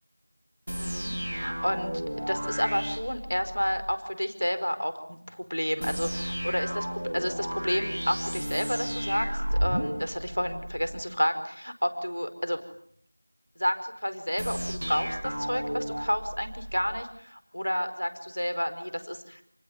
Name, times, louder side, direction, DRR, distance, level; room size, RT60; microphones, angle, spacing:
sound 1, 0.7-3.9 5.8-11.0 14.4-17.0, equal, 45° right, 1.8 m, -33 dB
voice 1, 0.8-12.6 13.6-19.4, equal, 50° left, 10 dB, 4.8 m, -30 dB
30.0 x 20.5 x 9.6 m, 0.66 s
figure-of-eight pair, 180°, 0 cm